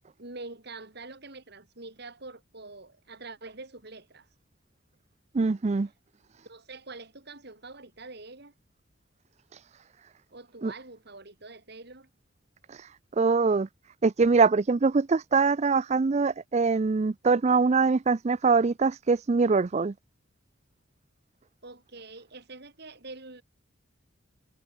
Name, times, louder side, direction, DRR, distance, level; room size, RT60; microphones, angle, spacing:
voice 1, 0.2-4.3 6.5-8.5 10.3-12.1 21.6-23.4, right 3 dB, 55° right, 3.1 m, -45 dB
voice 2, 5.3-5.9 10.6-10.7 12.7-12.9 13.2-13.7 14.0-19.9, right 4 dB, 35° right, 0.4 m, -23 dB
head